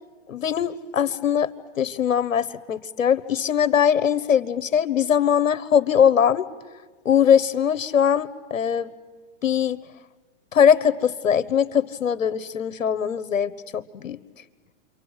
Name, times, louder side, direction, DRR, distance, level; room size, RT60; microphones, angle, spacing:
voice 1, 0.3-1.5 1.8-6.5 7.0-8.9 9.4-9.8 10.5-14.2, left 8 dB, 85° left, 15 dB, 1.3 m, -21 dB
29.5 x 24.5 x 8.1 m, 1.4 s
hypercardioid pair, 120°, 39 cm